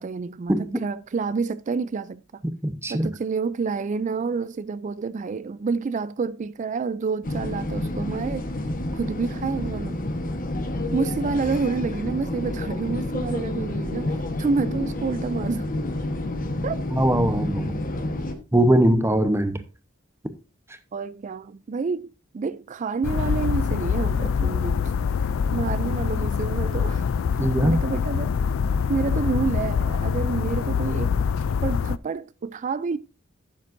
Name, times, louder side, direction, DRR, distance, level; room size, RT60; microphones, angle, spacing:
voice 1, 0.0-2.4 2.9-8.5 8.9-10.0 10.9-15.7 16.6-16.8 20.9-24.9 25.5-27.1 27.3-28.3 28.9-31.3 31.6-33.0, right 4 dB, 35° right, 0.3 m, -28 dB
voice 2, 2.6-3.1 16.9-17.9 18.5-19.6 27.4-27.8, right 1 dB, 15° right, 0.8 m, -21 dB
sound 1, 7.2-18.3, left 1 dB, 45° left, 1.2 m, -29 dB
sound 2, 23.0-32.0, left 6 dB, 75° left, 0.4 m, -24 dB
12.0 x 7.3 x 2.6 m
head